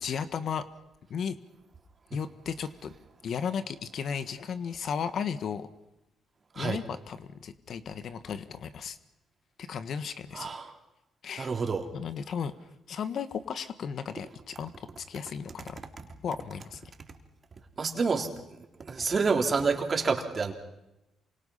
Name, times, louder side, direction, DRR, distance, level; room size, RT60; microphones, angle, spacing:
voice 1, 0.0-0.7 1.1-1.4 2.1-2.9 3.2-5.7 6.5-9.0 9.6-10.5 11.2-11.5 11.9-12.5 12.9-15.8 16.2-16.8, left 7 dB, 60° left, 12 dB, 1.5 m, -35 dB
voice 2, 10.3-10.7 11.4-11.9 16.0-16.1 17.8-18.3 18.6-20.5, right 4 dB, 40° right, 4 dB, 3.5 m, -28 dB
27.5 x 25.0 x 5.7 m, 0.92 s
cardioid pair, 90°, 0 cm